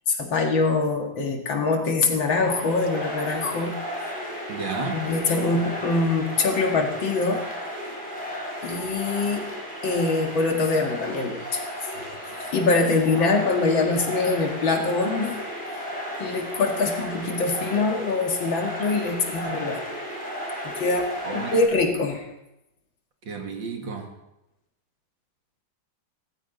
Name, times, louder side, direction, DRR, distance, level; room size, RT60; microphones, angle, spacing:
voice 1, 0.1-3.7 4.9-7.4 8.6-9.5 9.8-11.6 12.5-15.4 15.7-15.8 16.2-19.8 20.6-22.3, left 3 dB, 85° left, 2 dB, 2.7 m, -24 dB
sound 1, 2.1-21.6, equal, 10° right, 4.7 m, -34 dB
voice 2, 4.5-5.0 21.2-21.5 23.3-24.1, right 4 dB, 75° right, 3 dB, 2.7 m, -32 dB
18.5 x 15.0 x 4.0 m, 0.91 s
omnidirectional pair, 2.1 m